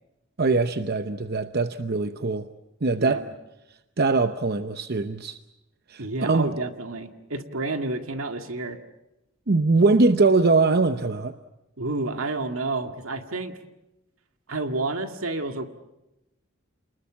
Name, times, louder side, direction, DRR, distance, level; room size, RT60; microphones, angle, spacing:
voice 1, 0.4-2.5 2.8-3.2 4.0-5.4 5.9-6.5 9.5-11.4, right 3 dB, 50° right, 10 dB, 0.8 m, -22 dB
voice 2, 3.0-3.3 6.0-8.8 11.8-13.6 14.5-15.7, right 2 dB, 80° right, 7 dB, 2.0 m, -30 dB
29.0 x 20.5 x 7.4 m, 0.93 s
head